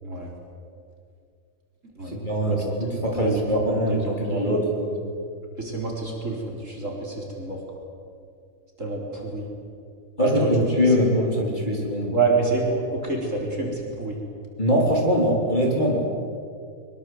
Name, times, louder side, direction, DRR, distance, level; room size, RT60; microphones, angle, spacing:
voice 1, 2.0-5.0 10.2-12.2 14.6-16.1, equal, 20° left, -2 dB, 4.0 m, -23 dB
voice 2, 3.1-4.6 5.6-7.6 8.8-9.5 10.2-10.5 12.1-14.2, right 3 dB, 35° right, -1 dB, 4.7 m, -27 dB
23.5 x 23.0 x 8.1 m, 2.3 s
omnidirectional pair, 2.3 m